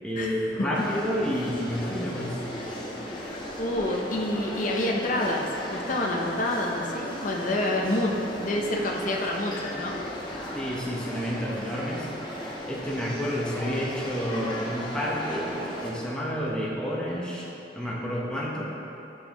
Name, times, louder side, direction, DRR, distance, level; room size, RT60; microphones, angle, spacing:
voice 1, 0.0-2.4 10.5-12.1 12.7-15.6 15.8-17.5 17.8-18.7, equal, 5° left, -5 dB, 0.9 m, -30 dB
sound 1, 0.7-15.9, left 1 dB, 25° left, 1.1 m, -36 dB
voice 2, 3.6-10.0, left 1 dB, 45° left, -1 dB, 0.7 m, -28 dB
11.5 x 6.3 x 3.0 m, 3.0 s
head